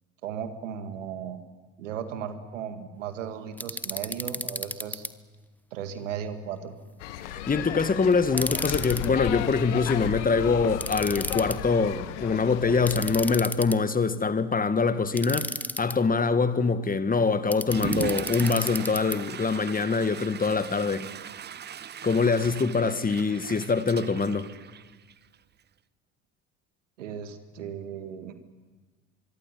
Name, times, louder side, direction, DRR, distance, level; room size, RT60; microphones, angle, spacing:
voice 1, 0.2-1.4 1.8-5.1 5.7-6.7 27.0-28.3, right 8 dB, 75° right, 2.1 m, -36 dB
sound 1, 3.6-5.1 8.3-9.1 10.8-11.6 12.9-14.0 15.2-15.9 17.5-19.2, left 1 dB, 5° left, 1.2 m, -33 dB
sound 2, 7.0-13.4, left 11 dB, 70° left, 1.5 m, -34 dB
voice 2, 7.2-21.1 22.0-24.5, left 4 dB, 20° left, 1.6 m, -24 dB
Water / Toilet flush, 17.6-25.3, right 8 dB, 25° right, 0.8 m, -38 dB
24.0 x 24.0 x 9.9 m
figure-of-eight pair, 55°, 38 cm